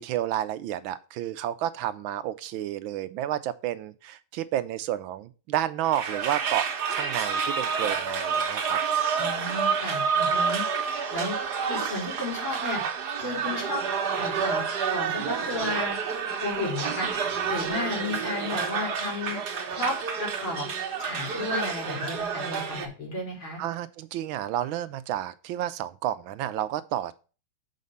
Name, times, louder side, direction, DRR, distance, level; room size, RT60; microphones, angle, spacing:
voice 1, 0.0-8.8 23.6-27.1, right 12 dB, 80° right, 15 dB, 1.4 m, -31 dB
sound 1, 5.8-22.9, right 6 dB, 60° right, 1.6 m, -29 dB
voice 2, 9.2-10.6 11.1-11.4 11.7-12.8 13.2-13.8 14.1-14.6 14.9-16.0 16.4-17.1 17.5-19.4 19.7-20.7 21.0-23.6, left 2 dB, 85° left, -2 dB, 4.6 m, -33 dB
6.5 x 5.2 x 5.3 m, 0.34 s
omnidirectional pair, 2.2 m